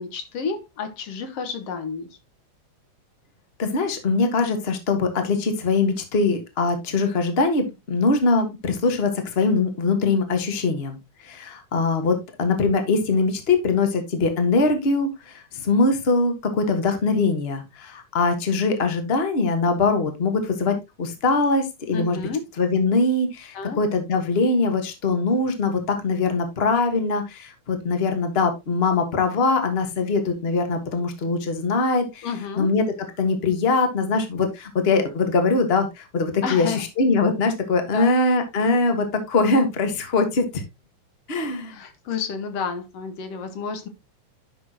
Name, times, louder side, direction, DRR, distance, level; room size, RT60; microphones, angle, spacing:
voice 1, 0.0-2.1 21.9-22.4 23.5-23.8 32.2-32.7 36.4-36.8 37.9-38.2 41.7-43.9, left 5 dB, 60° left, 1.9 m, -30 dB
voice 2, 3.6-11.0 11.2-22.2 22.6-32.3 32.6-32.8 33.2-40.6 41.3-41.8, left 3 dB, 40° left, 0.8 m, -22 dB
10.5 x 6.2 x 2.9 m
omnidirectional pair, 3.5 m